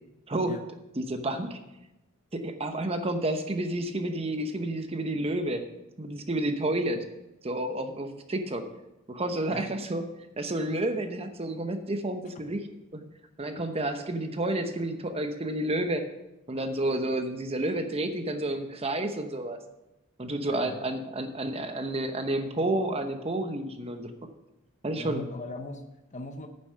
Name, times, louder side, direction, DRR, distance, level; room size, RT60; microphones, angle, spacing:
voice 1, 1.0-1.6 2.3-5.6 6.0-7.0 7.4-8.6 9.1-10.0 10.4-13.0 13.4-16.0 16.5-19.6 20.2-24.1 24.8-25.2, right 1 dB, 30° right, 7 dB, 0.8 m, -30 dB
voice 2, 20.5-20.8 24.9-26.5, left 2 dB, 35° left, 5 dB, 0.8 m, -39 dB
9.6 x 7.1 x 6.6 m, 0.94 s
head